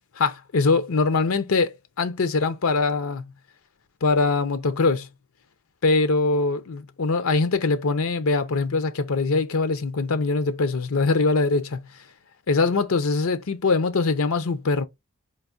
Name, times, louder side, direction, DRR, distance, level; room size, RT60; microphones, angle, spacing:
voice 1, 0.2-3.2 4.0-5.1 5.8-11.8 12.5-14.8, left 3 dB, 75° left, 0.6 m, -22 dB
4.7 x 2.6 x 2.5 m
head